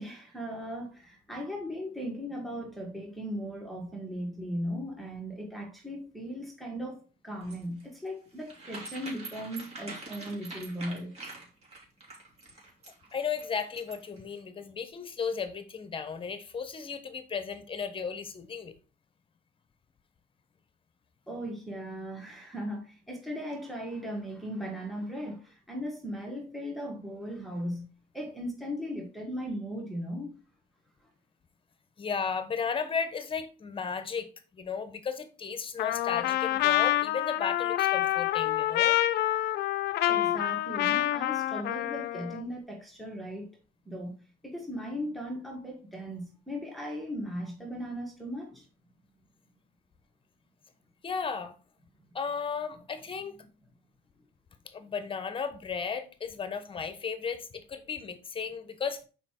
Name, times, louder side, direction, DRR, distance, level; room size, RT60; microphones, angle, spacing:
voice 1, 0.0-11.1 21.3-27.9 28.1-30.4 40.1-43.6 43.9-48.7, equal, ahead, 1.9 m, -37 dB
sound 1, 7.4-14.2, right 2 dB, 35° right, 3.0 m, -44 dB
voice 2, 13.1-18.7 32.0-39.0 51.0-51.5 52.1-53.4 54.7-59.0, left 6 dB, 30° left, 1.1 m, -35 dB
Trumpet, 35.8-42.4, left 14 dB, 75° left, 0.5 m, -27 dB
5.8 x 4.9 x 4.5 m
cardioid pair, 110°, 17 cm